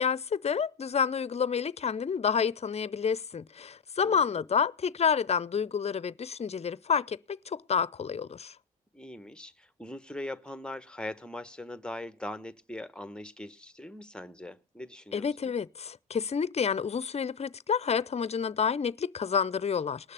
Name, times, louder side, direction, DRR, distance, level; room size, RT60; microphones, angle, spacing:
voice 1, 0.0-7.2 7.5-8.5 15.1-20.1, left 6 dB, 40° left, 0.6 m, -29 dB
voice 2, 4.0-4.5 8.9-15.3, left 1 dB, 5° left, 1.2 m, -41 dB
19.0 x 6.5 x 6.9 m
supercardioid pair, 40°, 16 cm